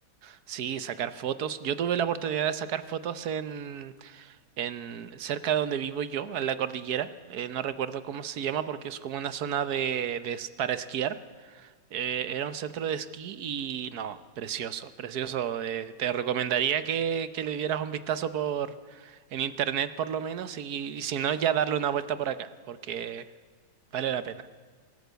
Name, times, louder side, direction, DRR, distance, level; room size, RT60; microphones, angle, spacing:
voice 1, 0.2-11.2 11.4-23.2 23.9-24.5, right 9 dB, 60° right, 13 dB, 1.2 m, -31 dB
23.5 x 13.5 x 8.0 m, 1.5 s
omnidirectional pair, 2.0 m